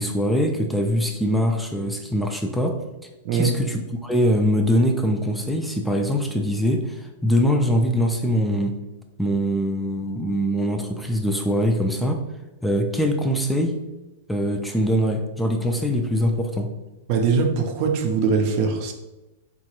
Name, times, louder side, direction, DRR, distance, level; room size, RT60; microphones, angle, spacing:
voice 1, 0.0-2.8 3.3-8.8 9.2-12.2 12.6-13.8 14.3-16.7, equal, 5° left, 3 dB, 0.3 m, -23 dB
voice 2, 17.1-18.9, right 5 dB, 50° right, 4 dB, 0.5 m, -21 dB
3.8 x 2.3 x 2.9 m, 1.0 s
hypercardioid pair, 115°, 0 cm